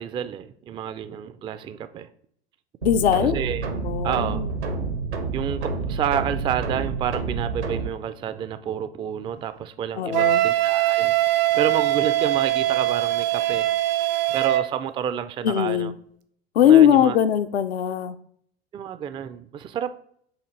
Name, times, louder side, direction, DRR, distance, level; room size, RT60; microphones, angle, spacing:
voice 1, 0.0-2.1 3.2-3.7 4.0-4.4 5.3-13.7 14.3-15.9 16.6-17.2 18.7-19.9, right 9 dB, 15° right, 0.3 m, -29 dB
voice 2, 2.8-3.4 3.8-4.5 10.0-10.5 15.4-16.0 16.5-18.2, left 10 dB, 75° left, 0.6 m, -20 dB
sound 1, 2.8-7.9, right 4 dB, 80° right, 1.1 m, -29 dB
Wind instrument woodwind instrument, 10.1-14.7, right 14 dB, 60° right, 0.8 m, -22 dB
7.1 x 2.7 x 5.2 m
figure-of-eight pair, 80°, 33 cm